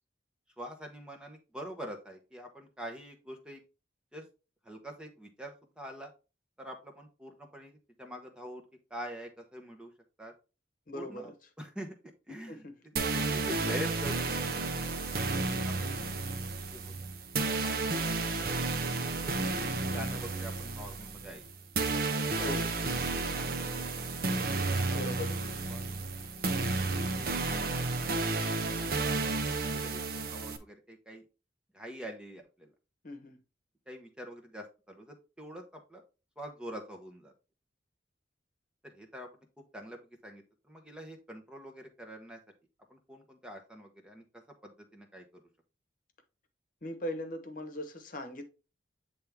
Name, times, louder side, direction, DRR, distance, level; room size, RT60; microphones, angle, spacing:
voice 1, 0.6-3.6 4.1-4.3 4.6-6.1 6.6-8.6 8.9-9.9 10.2-10.3 10.9-11.3 11.6-12.0 12.3-12.7 13.1-14.8 15.3-16.9 17.6-18.6 19.0-21.4 22.4-24.3 24.8-25.3 25.7-25.9 27.1-28.4 29.6-31.2 31.7-32.7 33.9-36.0 36.4-37.3 38.8-39.3 39.7-42.4 42.9-45.4, right 1 dB, 5° right, 0.8 m, -45 dB
voice 2, 10.9-11.3 12.5-12.7 22.4-22.7 24.9-25.5 33.0-33.4 46.8-48.4, left 1 dB, 45° left, 1.1 m, -39 dB
sound 1, 13.0-30.6, right 3 dB, 55° right, 0.7 m, -32 dB
8.5 x 3.4 x 3.5 m
head